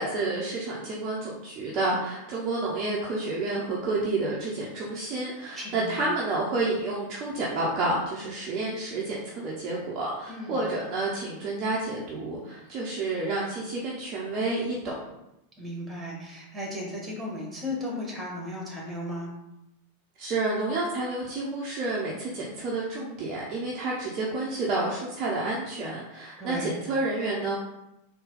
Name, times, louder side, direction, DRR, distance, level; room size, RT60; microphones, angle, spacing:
voice 1, 0.0-15.2 20.2-27.6, right 2 dB, 35° right, -5 dB, 0.7 m, -30 dB
voice 2, 5.5-6.0 10.3-10.6 15.6-19.3 26.4-26.7, left 1 dB, 10° right, -2 dB, 1.4 m, -35 dB
3.9 x 2.3 x 3.9 m, 0.86 s
figure-of-eight pair, 90°, 0 cm